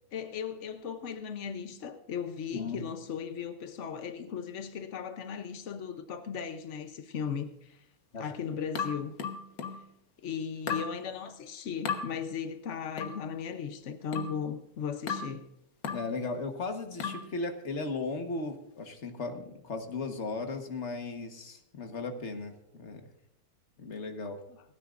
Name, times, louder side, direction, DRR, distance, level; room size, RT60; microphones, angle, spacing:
voice 1, 0.1-7.8 8.2-9.1 10.2-15.5, left 7 dB, 80° left, 0.6 m, -37 dB
sound 1, 8.8-9.9 10.7-11.0 11.9-12.1 13.0-13.2 14.1-14.4 15.1-15.4 15.8-16.1 17.0-17.3, left 6 dB, 55° left, 1.8 m, -34 dB
voice 2, 15.9-23.1 23.8-24.4, left 3 dB, 35° left, 1.3 m, -36 dB
29.5 x 9.9 x 2.5 m
omnidirectional pair, 2.4 m